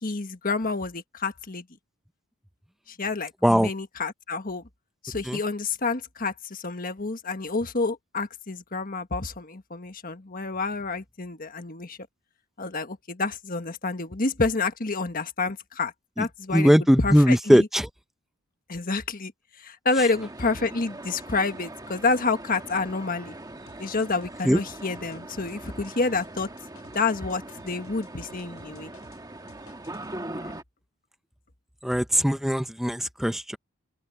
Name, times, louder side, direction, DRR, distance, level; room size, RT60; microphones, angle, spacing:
voice 1, 0.0-1.6 3.0-4.6 5.0-12.0 12.6-16.7 17.0-17.7 18.7-19.3 19.6-23.3 23.8-26.5 26.9-28.9 30.4-30.5, left 3 dB, 40° left, 1.5 m, -29 dB
voice 2, 16.5-17.9 24.4-24.6 31.8-33.6, equal, ahead, 0.6 m, -20 dB
sound 1, 20.1-30.6, right 1 dB, 20° right, 1.6 m, -41 dB
sound 2, 23.7-29.2 29.5-30.1, left 2 dB, 80° left, 7.2 m, -54 dB
open air
head